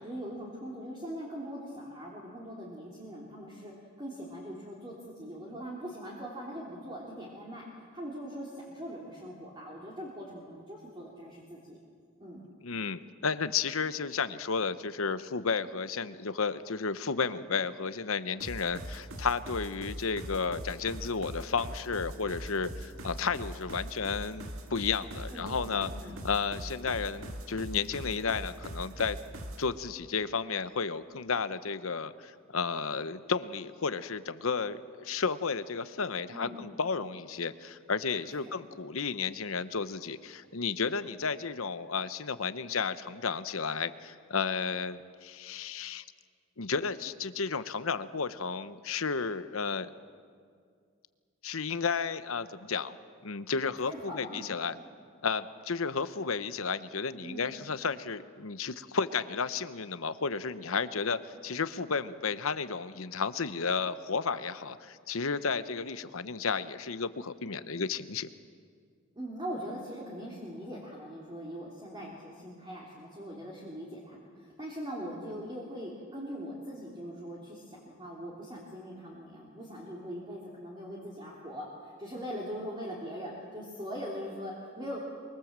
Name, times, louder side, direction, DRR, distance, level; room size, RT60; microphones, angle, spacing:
voice 1, 0.0-7.6 7.9-11.8 12.2-12.5 25.3-26.2 36.3-36.6 38.3-38.5 53.9-54.4 57.2-57.6 69.1-85.0, equal, 20° right, -4 dB, 3.1 m, -41 dB
voice 2, 12.6-25.9 26.2-29.2 29.6-46.0 46.6-49.9 51.4-52.9 53.2-54.8 55.2-68.3, left 5 dB, 75° left, 13 dB, 0.9 m, -32 dB
sound 1, 18.4-29.7, right 1 dB, 80° right, 1.8 m, -41 dB
24.5 x 24.0 x 7.5 m, 2.1 s
head